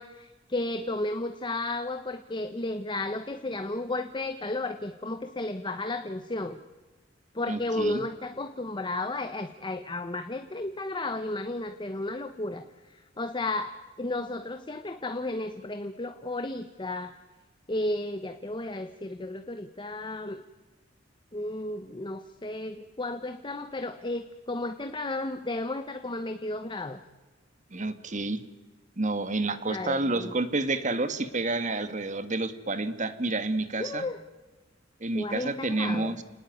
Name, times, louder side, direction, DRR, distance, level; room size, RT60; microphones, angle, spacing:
voice 1, 0.0-6.6 7.3-12.7 13.2-17.1 17.7-20.4 21.3-27.0 29.7-30.3 33.8-34.2 35.1-36.2, left 2 dB, 25° left, 9 dB, 1.0 m, -33 dB
voice 2, 7.5-8.0 27.7-28.4 29.0-34.0 35.0-36.2, right 2 dB, 40° right, 11 dB, 1.8 m, -29 dB
29.5 x 19.0 x 9.5 m, 1.3 s
head